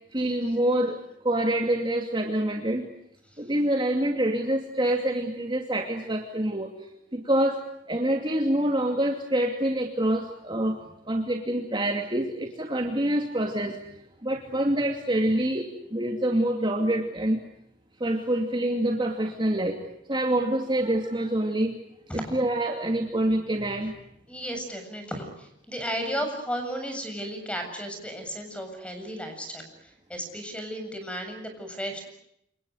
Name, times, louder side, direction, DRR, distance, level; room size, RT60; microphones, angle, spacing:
voice 1, 0.1-1.0 1.2-2.9 3.4-6.7 7.1-7.6 7.9-10.8 11.1-13.8 14.2-17.4 18.0-19.8 20.1-21.7 22.1-23.9, right 1 dB, 25° right, 3 dB, 2.6 m, -26 dB
voice 2, 24.3-29.7 30.1-32.1, equal, 5° left, 6 dB, 7.6 m, -34 dB
29.0 x 27.0 x 6.4 m, 0.76 s
head